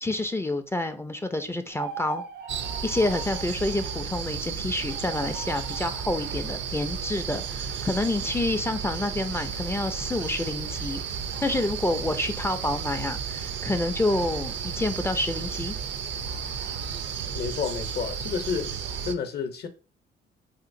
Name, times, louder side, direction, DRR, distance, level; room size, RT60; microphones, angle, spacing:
voice 1, 0.0-2.2 2.8-11.0 11.4-15.8, left 2 dB, 15° left, 0.3 m, -28 dB
sound 1, 1.7-3.5 4.8-5.9, right 6 dB, 80° right, 1.0 m, -39 dB
sound 2, 2.5-19.1, right 6 dB, 65° right, 0.4 m, -33 dB
voice 2, 17.3-18.8 19.0-19.7, left 6 dB, 55° left, 0.6 m, -30 dB
3.3 x 2.8 x 2.5 m
cardioid pair, 90°, 20 cm